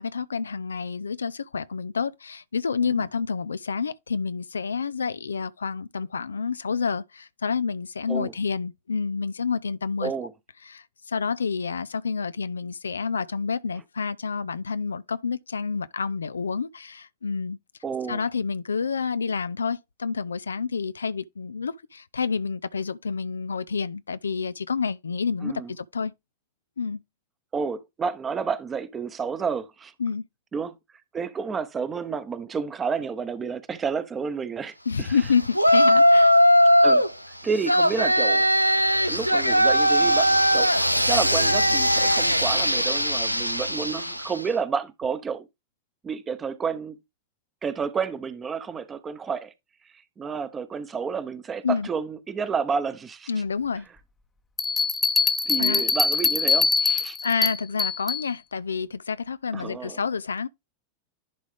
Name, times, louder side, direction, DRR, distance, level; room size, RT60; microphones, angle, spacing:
voice 1, 0.0-10.1 10.6-17.6 18.1-26.1 26.8-27.0 30.0-30.2 34.9-36.4 51.6-51.9 53.3-53.9 55.6-55.8 57.2-60.5, left 5 dB, 75° left, 0.3 m, -28 dB
voice 2, 17.8-18.2 25.4-25.7 27.5-29.9 30.5-30.7 31.1-35.1 36.8-37.1 37.4-38.5 39.1-45.5 46.0-47.0 47.6-49.5 50.2-53.3 55.5-57.2 59.5-60.0, right 5 dB, 20° right, 0.9 m, -30 dB
Yell, 35.5-37.1 37.6-44.4, equal, 90° right, 0.5 m, -19 dB
sound 1, 54.6-58.3, left 4 dB, 15° left, 0.9 m, -23 dB
10.5 x 3.6 x 3.4 m
figure-of-eight pair, 90°, 0 cm